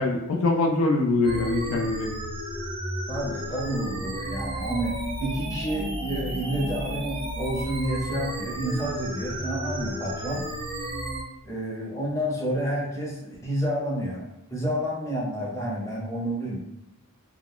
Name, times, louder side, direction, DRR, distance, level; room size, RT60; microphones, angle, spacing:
voice 1, 0.0-2.1, left 2 dB, 70° left, 1 dB, 0.4 m, -23 dB
sound 1, 1.2-11.2, right 1 dB, 25° right, 0.4 m, -33 dB
voice 2, 3.1-10.4 11.4-16.6, right 1 dB, 15° left, -5 dB, 0.7 m, -30 dB
2.3 x 2.1 x 3.6 m, 0.87 s
head